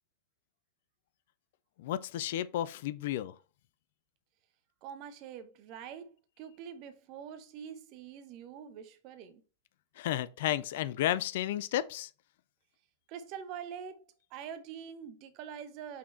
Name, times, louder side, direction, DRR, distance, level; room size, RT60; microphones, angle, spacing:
voice 1, 1.8-3.3 10.0-12.1, left 12 dB, 55° left, 0.4 m, -32 dB
voice 2, 4.8-6.1 6.4-9.4 13.1-16.0, right 8 dB, 40° right, 0.9 m, -45 dB
5.6 x 4.2 x 4.3 m
figure-of-eight pair, 90°, 0 cm